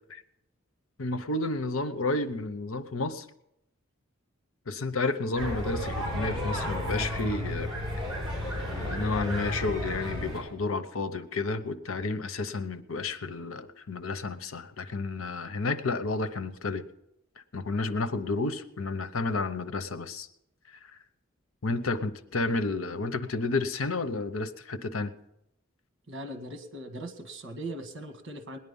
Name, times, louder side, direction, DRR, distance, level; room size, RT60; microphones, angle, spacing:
voice 1, 1.0-3.3 4.7-7.7 8.7-16.8 17.5-20.3 20.7-20.8 21.6-25.1, left 3 dB, 85° left, 11 dB, 0.9 m, -31 dB
sound 1, 5.4-10.4, equal, 25° right, 6.6 m, -33 dB
voice 2, 26.1-28.6, right 1 dB, 60° right, 7 dB, 1.8 m, -39 dB
19.0 x 10.5 x 5.5 m, 0.84 s
head